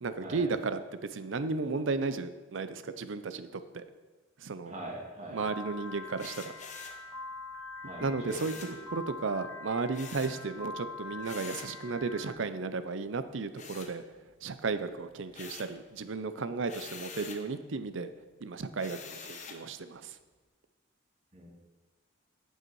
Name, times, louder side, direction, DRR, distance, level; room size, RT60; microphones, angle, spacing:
voice 1, 0.0-3.8 4.4-4.7 5.3-6.6 8.0-8.5 8.9-14.0 14.4-18.1 18.4-20.2, right 4 dB, 70° right, 11 dB, 0.6 m, -34 dB
voice 2, 4.7-5.4 7.8-8.8 21.3-21.5, right 1 dB, 35° right, -2 dB, 2.2 m, -43 dB
Piano, 5.4-12.3, left 3 dB, 5° right, 1.8 m, -44 dB
sound 1, 6.2-7.0 8.3-8.8 9.9-10.4 11.2-11.8 13.5-14.4 14.8-15.8 16.6-17.5 18.8-19.7, left 5 dB, 35° left, 0.9 m, -46 dB
9.1 x 7.6 x 4.7 m, 1.3 s
head